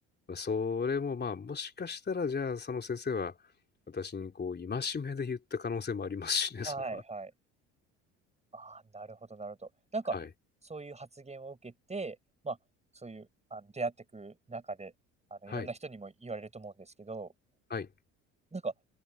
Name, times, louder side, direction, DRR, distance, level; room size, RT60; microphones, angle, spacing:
voice 1, 0.3-3.4 3.9-7.0 10.1-10.3 15.5-15.7 17.7-17.9, left 5 dB, 25° left, 3.3 m, -34 dB
voice 2, 6.7-7.3 8.5-10.2 10.7-12.2 12.4-12.6 13.0-14.9 15.3-17.3 18.5-18.7, right 3 dB, 20° right, 7.6 m, -40 dB
hypercardioid pair, 70°, 36 cm